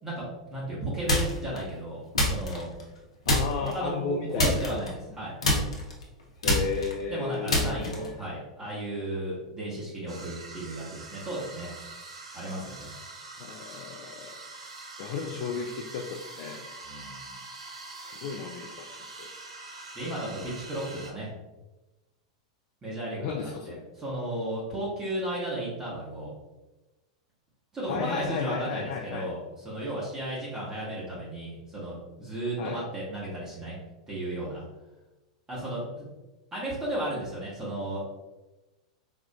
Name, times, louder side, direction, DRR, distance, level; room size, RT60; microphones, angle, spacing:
voice 1, 0.5-2.7 3.6-5.3 7.1-11.7 12.3-12.9 16.9-17.4 19.9-21.3 22.8-26.3 27.7-33.8 34.1-34.6 35.5-36.0 36.5-38.1, right 1 dB, 20° right, -7 dB, 1.1 m, -34 dB
sound 1, 1.1-1.6 2.1-3.0 3.3-3.8 4.4-5.2 5.4-8.2, left 1 dB, 80° left, 0.7 m, -26 dB
voice 2, 3.3-4.8 6.4-8.2 13.4-14.4 15.0-16.7 18.0-18.9 19.2-19.3 23.2-23.8 27.9-29.3 32.6-32.8, left 5 dB, 50° left, 2 dB, 0.3 m, -34 dB
sound 2, 10.1-21.1, right 3 dB, 75° right, 0.5 m, -44 dB
4.3 x 2.4 x 2.2 m, 1.1 s
figure-of-eight pair, 90°, 3 cm